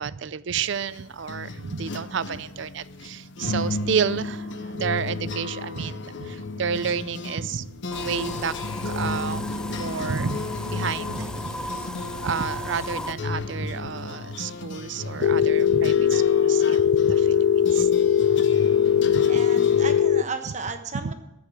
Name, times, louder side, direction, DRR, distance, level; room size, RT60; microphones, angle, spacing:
voice 1, 0.0-8.5 8.8-11.5 12.2-17.9 19.0-19.4 20.5-20.6 21.0-21.1, right 6 dB, 65° right, 17 dB, 0.5 m, -30 dB
sound 1, 0.6-20.0, left 3 dB, 60° left, 0.8 m, -34 dB
sound 2, 7.9-13.1, left 1 dB, 5° left, 0.3 m, -35 dB
Telephone, 15.2-20.2, left 8 dB, 80° left, 0.4 m, -20 dB
voice 2, 19.3-21.1, right 4 dB, 35° right, 7 dB, 1.1 m, -34 dB
14.0 x 5.3 x 8.4 m, 0.94 s
head